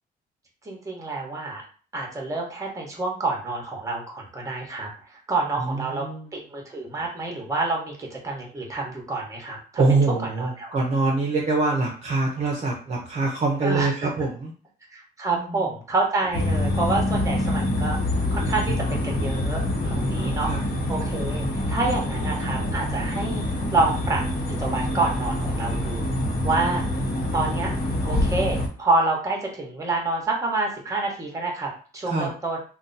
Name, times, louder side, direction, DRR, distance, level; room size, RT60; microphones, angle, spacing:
voice 1, 0.6-1.6 1.9-6.1 6.3-10.0 10.4-10.8 13.6-13.9 14.9-18.0 18.3-19.6 19.9-20.5 20.9-23.4 23.7-24.2 24.6-26.2 26.4-26.9 27.3-27.7 28.0-32.6, right 3 dB, 20° right, 0 dB, 0.9 m, -28 dB
voice 2, 5.6-6.3 9.8-14.5 15.3-15.6 19.8-20.6 32.0-32.3, right 3 dB, 40° right, -2 dB, 0.6 m, -24 dB
sound 1, 16.3-28.7, left 1 dB, 60° left, 0.9 m, -26 dB
2.8 x 2.1 x 3.9 m, 0.40 s
cardioid pair, 135°, 18 cm